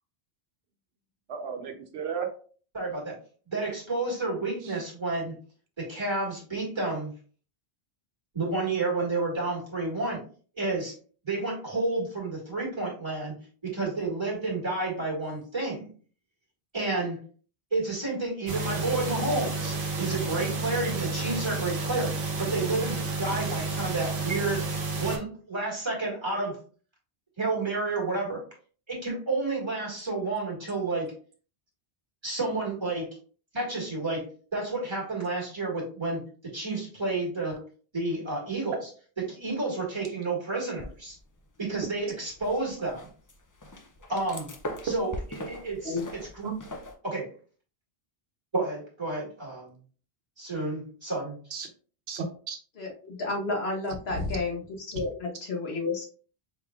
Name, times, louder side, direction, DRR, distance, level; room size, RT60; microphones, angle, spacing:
voice 1, 1.3-2.3 4.6-4.7 44.9-45.0 46.4-46.5 51.5-51.7 52.1-52.6 54.1-54.4 54.9-55.1, right 4 dB, 85° right, 5 dB, 1.0 m, -33 dB
voice 2, 2.7-3.2 3.5-5.4 5.8-7.1 8.3-10.2 10.6-10.9 11.2-15.9 16.7-17.2 17.7-22.1 22.4-24.7 25.0-26.6 27.4-28.4 28.9-31.1 32.2-33.2 33.5-34.3 34.5-37.6 37.9-38.8 39.2-41.2 41.6-43.1 44.1-44.5 44.8-45.1 45.4-46.5 47.0-47.3 48.5-49.8 50.4-51.4, right 2 dB, 25° right, -3 dB, 1.8 m, -30 dB
sound 1, 18.5-25.2, right 3 dB, 60° right, 1.1 m, -31 dB
sound 2, 40.8-41.5 41.8-47.0, left 1 dB, 30° left, 0.3 m, -41 dB
voice 3, 52.8-56.1, left 3 dB, 80° left, -1 dB, 1.4 m, -31 dB
4.4 x 3.4 x 2.3 m, 0.41 s
omnidirectional pair, 1.0 m